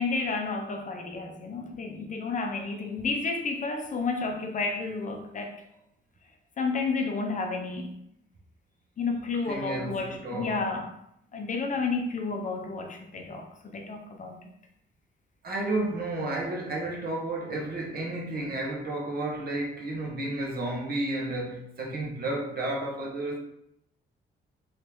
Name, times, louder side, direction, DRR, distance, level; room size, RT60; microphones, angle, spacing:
voice 1, 0.0-5.6 6.6-7.9 9.0-10.9 11.3-14.4, left 4 dB, 40° left, 4 dB, 0.6 m, -31 dB
voice 2, 9.4-10.6 15.4-23.4, right 2 dB, 50° right, -1 dB, 1.1 m, -32 dB
3.2 x 2.8 x 3.4 m, 0.74 s
cardioid pair, 90°, 20 cm